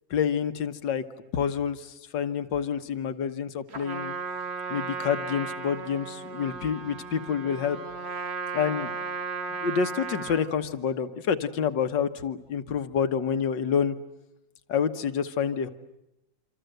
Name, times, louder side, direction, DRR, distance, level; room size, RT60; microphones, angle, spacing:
voice 1, 0.1-1.0 1.3-4.2 4.7-7.8 8.5-8.9 9.6-14.0 14.7-15.7, left 7 dB, 80° left, 9 dB, 1.9 m, -28 dB
Trumpet, 3.7-10.5, right 4 dB, 40° right, 1.5 m, -35 dB
27.5 x 26.0 x 8.0 m, 0.87 s
omnidirectional pair, 2.0 m